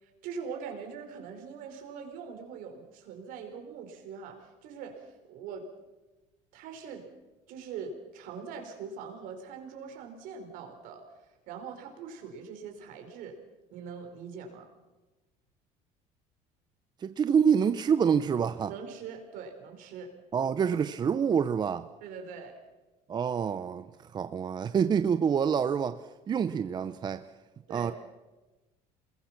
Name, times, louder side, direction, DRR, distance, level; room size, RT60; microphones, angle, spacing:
voice 1, 0.0-5.7 6.5-7.1 7.5-11.0 11.5-13.4 13.7-14.7 18.6-20.1 22.0-22.6 27.7-27.9, right 6 dB, 70° right, 4.6 m, -42 dB
voice 2, 17.0-18.7 20.3-21.9 23.1-23.8 24.1-26.0 26.3-27.2 27.7-27.9, right 7 dB, 30° right, 0.7 m, -26 dB
28.0 x 21.0 x 5.9 m
cardioid pair, 125°, 15 cm